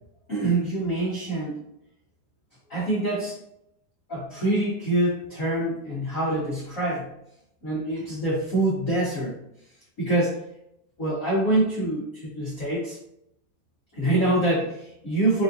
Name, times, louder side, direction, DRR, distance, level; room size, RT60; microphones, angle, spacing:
voice 1, 0.3-1.6 2.7-3.4 4.1-7.1 7.6-9.4 10.0-10.4 11.0-13.0 13.9-15.4, right 2 dB, 90° left, -7 dB, 0.7 m, -25 dB
5.5 x 2.6 x 2.7 m, 0.77 s
omnidirectional pair, 3.4 m